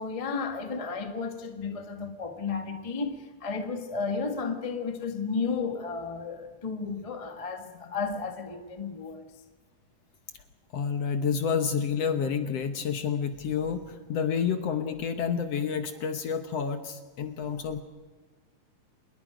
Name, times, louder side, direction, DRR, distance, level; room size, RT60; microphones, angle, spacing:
voice 1, 0.0-9.2, left 4 dB, 45° left, 0.4 m, -33 dB
voice 2, 10.7-17.8, left 6 dB, 65° left, 1.7 m, -29 dB
27.0 x 21.0 x 5.1 m
omnidirectional pair, 3.9 m